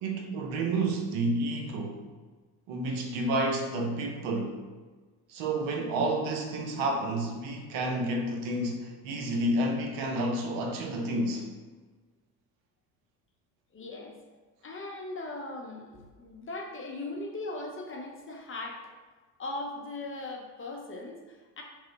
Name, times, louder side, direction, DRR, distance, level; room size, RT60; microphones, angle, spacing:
voice 1, 0.0-2.0 2.7-4.6 5.3-11.5, right 1 dB, 70° right, 2 dB, 0.7 m, -30 dB
voice 2, 13.7-14.1 14.6-18.8 19.4-21.6, left 2 dB, 25° left, 0 dB, 0.6 m, -39 dB
3.0 x 2.0 x 3.9 m, 1.4 s
hypercardioid pair, 70°, 50 cm